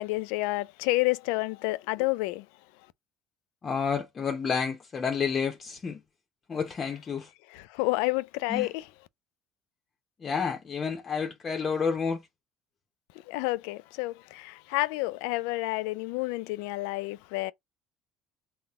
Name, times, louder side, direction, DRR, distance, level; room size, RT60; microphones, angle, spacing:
voice 1, 0.0-2.5 7.5-8.9 13.3-17.5, left 21 dB, 80° left, 0.3 m, -29 dB
voice 2, 3.6-6.0 6.5-7.3 8.5-8.7 10.2-12.2, left 6 dB, 35° left, 0.8 m, -30 dB
4.1 x 2.1 x 3.5 m
supercardioid pair, 80°, 0 cm